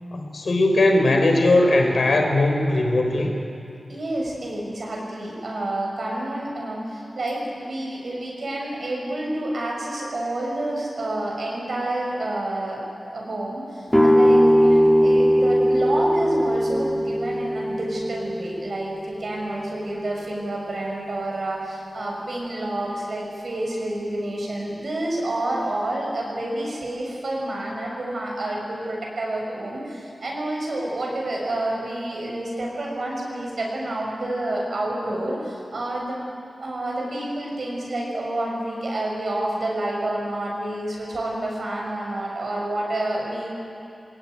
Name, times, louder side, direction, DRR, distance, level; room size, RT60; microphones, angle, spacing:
voice 1, 0.1-3.3, left 2 dB, 70° left, 3 dB, 4.1 m, -19 dB
voice 2, 3.9-36.2 36.6-43.5, right 1 dB, 65° right, -2 dB, 7.5 m, -29 dB
sound 1, 13.9-19.6, equal, ahead, 3.2 m, -19 dB
24.5 x 20.5 x 9.8 m, 2.7 s
wide cardioid pair, 95°, 0 cm